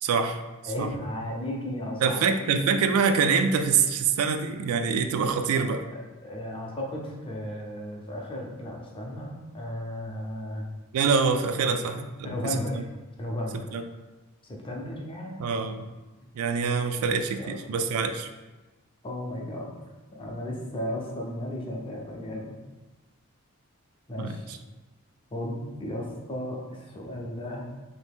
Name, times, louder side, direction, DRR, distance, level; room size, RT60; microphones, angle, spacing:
voice 1, 0.0-0.4 0.8-0.9 2.0-5.8 10.9-12.3 13.7-13.8 15.4-15.9 16.3-18.3 24.2-24.6, right 5 dB, 70° right, 10 dB, 0.3 m, -25 dB
voice 2, 0.7-2.7 5.6-10.7 11.6-11.8 12.2-12.9 13.2-13.7 14.5-15.4 17.0-17.1 17.4-17.5 19.0-19.7 20.1-22.6 24.1-24.5 25.3-27.6, left 1 dB, 25° left, -1 dB, 0.6 m, -35 dB
2.9 x 2.7 x 3.5 m, 1.2 s
head